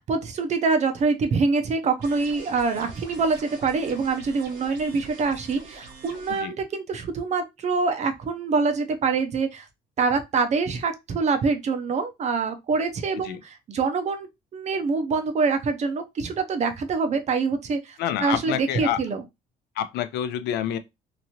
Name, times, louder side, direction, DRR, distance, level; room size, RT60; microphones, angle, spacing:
voice 1, 0.1-9.6 10.0-19.2, right 4 dB, 45° right, 0.6 m, -25 dB
sound 1, 2.0-6.4, right 3 dB, 90° right, 1.1 m, -44 dB
voice 2, 18.0-19.0 19.8-20.8, left 10 dB, 75° left, 0.5 m, -28 dB
2.9 x 2.5 x 2.8 m
cardioid pair, 110°, 17 cm